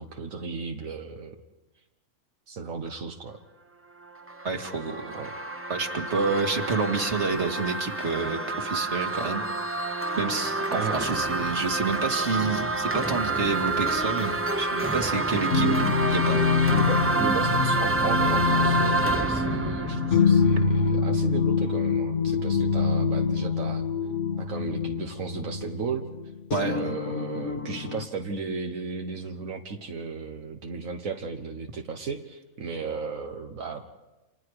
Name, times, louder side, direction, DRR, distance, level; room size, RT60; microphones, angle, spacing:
voice 1, 0.0-1.3 2.5-3.4 5.1-5.3 10.7-11.0 15.3-16.0 16.7-23.8 24.4-26.1 26.6-33.8, right 4 dB, 80° right, 3 dB, 1.7 m, -35 dB
sound 1, 4.0-21.0, right 2 dB, 10° right, 1.0 m, -28 dB
voice 2, 4.4-5.2 5.7-9.4 10.2-15.7 16.1-16.4 26.5-26.8, right 4 dB, 60° right, 5 dB, 2.4 m, -28 dB
sound 2, 15.5-28.0, left 5 dB, 60° left, 1.7 m, -25 dB
30.0 x 26.5 x 4.9 m, 1.1 s
omnidirectional pair, 1.4 m